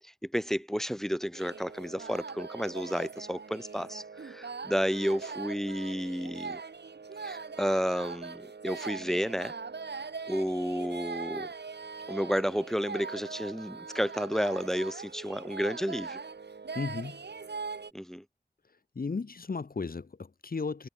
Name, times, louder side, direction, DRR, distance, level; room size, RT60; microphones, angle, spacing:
voice 1, 0.2-6.6 7.2-9.5 10.3-11.5 12.1-16.2 17.9-18.2, equal, ahead, 0.6 m, -31 dB
sound 1, 1.3-17.9, right 5 dB, 80° right, 1.0 m, -41 dB
voice 2, 16.7-17.3 18.9-20.9, left 4 dB, 60° left, 0.8 m, -35 dB
wide cardioid pair, 45°, 17 cm